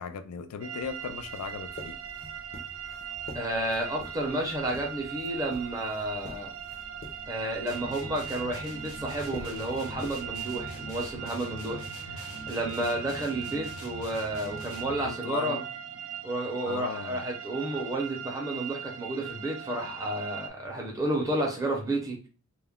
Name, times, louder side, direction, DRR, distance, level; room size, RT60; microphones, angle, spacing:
voice 1, 0.0-2.0 15.0-15.6 16.7-17.2, left 6 dB, 90° left, 0.4 m, -37 dB
sound 1, 0.6-20.5, right 9 dB, 70° right, 0.4 m, -40 dB
sound 2, 0.8-11.2, left 1 dB, 45° left, 0.6 m, -47 dB
voice 2, 3.3-6.5 7.3-11.8 12.1-15.6 16.2-22.2, right 1 dB, 15° right, 0.7 m, -31 dB
sound 3, 7.7-15.2, equal, 70° left, 0.9 m, -43 dB
2.3 x 2.1 x 3.5 m
head